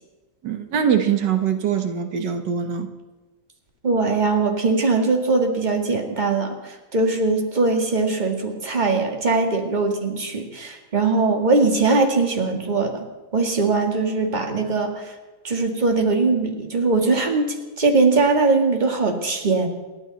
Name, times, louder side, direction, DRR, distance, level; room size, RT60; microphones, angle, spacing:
voice 1, 0.4-2.9, right 8 dB, 90° right, 6 dB, 1.9 m, -22 dB
voice 2, 3.8-13.1 13.3-15.1 15.4-19.7, right 3 dB, 25° right, 3 dB, 2.1 m, -21 dB
28.0 x 12.0 x 4.1 m, 1.2 s
omnidirectional pair, 1.8 m